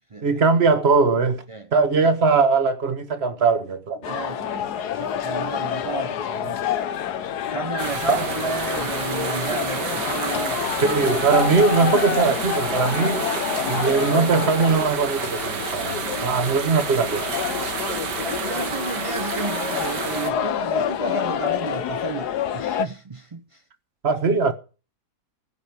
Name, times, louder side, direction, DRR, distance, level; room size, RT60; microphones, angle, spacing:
voice 1, 0.2-1.4 1.7-4.0 8.1-8.2 10.8-13.3 13.7-17.3 24.0-24.5, right 4 dB, 40° right, 1.5 m, -20 dB
sound 1, 4.0-22.9, left 9 dB, 75° left, 1.4 m, -28 dB
voice 2, 4.1-6.8 7.5-10.9 13.7-13.9 18.2-23.6, right 4 dB, 55° right, 0.3 m, -33 dB
sound 2, 7.8-20.3, right 6 dB, 85° right, 2.0 m, -30 dB
15.5 x 5.4 x 9.3 m
omnidirectional pair, 1.8 m